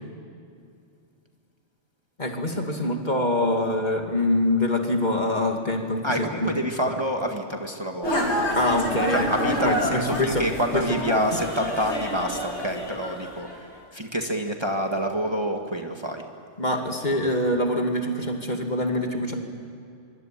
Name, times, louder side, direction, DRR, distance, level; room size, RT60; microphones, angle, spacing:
voice 1, 2.2-6.5 8.6-10.4 10.7-11.3 16.6-19.4, left 1 dB, 40° left, 3 dB, 2.7 m, -25 dB
voice 2, 6.0-8.2 9.1-16.2, equal, 20° right, 3 dB, 1.9 m, -28 dB
sound 1, 8.0-13.6, equal, 70° left, 4.3 m, -28 dB
24.5 x 24.0 x 9.2 m, 2.4 s
omnidirectional pair, 1.2 m